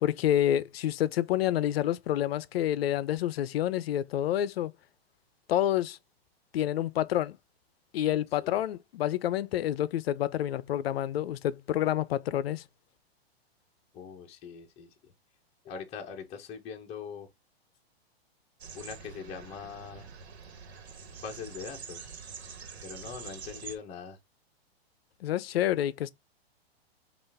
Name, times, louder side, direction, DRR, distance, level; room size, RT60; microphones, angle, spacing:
voice 1, 0.0-4.7 5.5-6.0 6.5-7.4 7.9-12.6 25.2-26.1, left 12 dB, 70° left, 0.6 m, -28 dB
voice 2, 13.9-15.1 15.6-17.3 18.7-20.1 21.2-22.1 22.8-24.2, left 6 dB, 20° left, 0.8 m, -42 dB
sound 1, 18.6-23.8, right 6 dB, 85° right, 1.3 m, -45 dB
5.4 x 2.5 x 3.4 m
hypercardioid pair, 150°, 32 cm